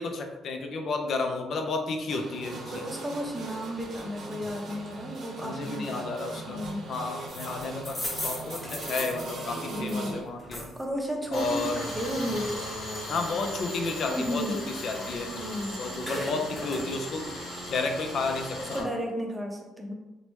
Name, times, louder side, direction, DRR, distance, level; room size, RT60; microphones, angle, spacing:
voice 1, 0.0-2.8 5.4-6.6 6.9-10.7 11.3-11.8 13.1-14.4 14.8-15.3 15.8-17.3 17.7-18.9, left 3 dB, 60° left, 4 dB, 0.4 m, -32 dB
sound 1, 2.1-10.2, right 2 dB, 60° right, 0.7 m, -40 dB
voice 2, 2.6-6.0 6.3-6.9 9.7-10.2 10.8-12.7 14.1-14.6 15.3-15.8 18.6-19.9, equal, 5° right, 1 dB, 0.6 m, -33 dB
sound 2, 7.3-10.8 11.2-13.6 14.0-15.5 15.8-16.9, left 1 dB, 15° left, 1.0 m, -38 dB
Tools, 11.3-18.8, left 1 dB, 80° left, 0.9 m, -37 dB
2.9 x 2.1 x 3.1 m, 1.1 s
supercardioid pair, 70°, 0 cm